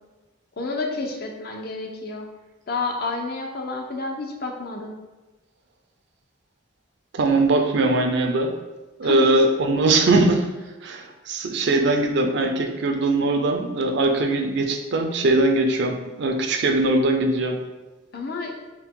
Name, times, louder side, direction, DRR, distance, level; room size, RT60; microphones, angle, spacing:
voice 1, 0.6-2.3 2.7-4.9 9.0-9.4 18.1-18.5, left 3 dB, 50° left, 2 dB, 0.5 m, -29 dB
voice 2, 7.1-8.5 9.0-10.5 10.8-17.6, right 2 dB, 60° right, 4 dB, 0.4 m, -21 dB
4.3 x 2.2 x 3.7 m, 1.2 s
head